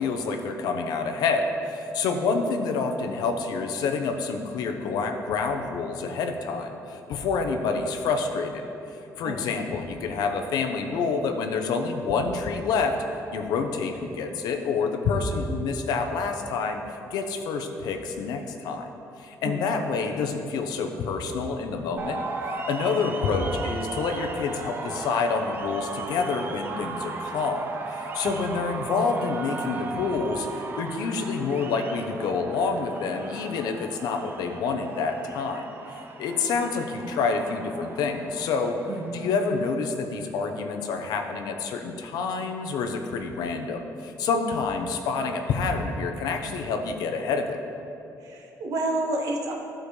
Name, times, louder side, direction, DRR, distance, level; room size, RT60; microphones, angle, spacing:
voice 1, 0.0-8.7 9.2-13.0 13.3-16.8 17.1-18.9 19.2-22.2 22.7-38.8 39.1-47.6, left 4 dB, 90° left, 4 dB, 0.8 m, -28 dB
voice 2, 2.0-2.3 9.2-9.5 19.4-19.6 22.8-23.1 28.2-28.4 38.9-39.3 48.2-49.5, right 2 dB, 65° right, 0 dB, 1.2 m, -31 dB
sound 1, 22.0-39.7, right 3 dB, 30° right, 0.6 m, -37 dB
14.5 x 5.0 x 3.2 m, 2.9 s
cardioid pair, 165°, 7 cm